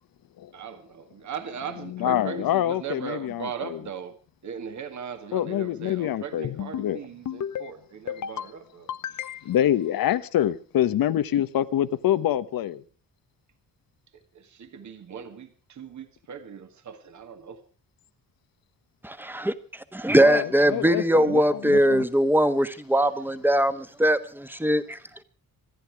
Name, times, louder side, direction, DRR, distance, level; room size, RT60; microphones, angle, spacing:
voice 1, 0.5-4.2 4.4-9.3 14.3-17.6, right 7 dB, 55° right, 2.0 m, -38 dB
voice 2, 1.9-3.8 5.3-7.0 9.4-12.8 20.2-22.1, left 11 dB, 80° left, 1.2 m, -26 dB
sound 1, 6.4-6.9 7.3-7.7 8.1-8.5 8.9-9.7, left 9 dB, 60° left, 0.9 m, -33 dB
voice 3, 19.9-24.2 24.6-24.8, equal, 5° right, 1.4 m, -20 dB
26.5 x 10.5 x 4.8 m
cardioid pair, 120°, 34 cm